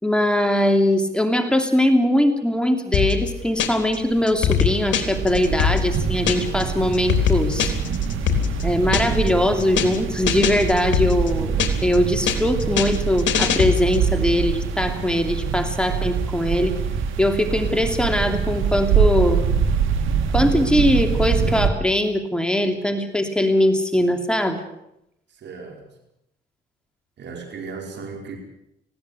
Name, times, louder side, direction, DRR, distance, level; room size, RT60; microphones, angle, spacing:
voice 1, 0.0-7.7 8.6-16.7 17.2-19.5 20.3-24.6, left 1 dB, 5° left, 5 dB, 2.8 m, -21 dB
sound 1, 2.9-4.0 4.3-6.6 6.9-9.3 9.6-10.0 10.3-12.0 12.3-14.1, left 8 dB, 70° left, 3.4 m, -22 dB
sound 2, 3.1-3.2 3.5-21.7, right 6 dB, 90° right, 2.3 m, -25 dB
voice 2, 25.3-25.8 27.2-28.4, right 5 dB, 60° right, 2 dB, 4.9 m, -36 dB
20.0 x 16.5 x 8.4 m, 0.81 s
cardioid pair, 90°, 20 cm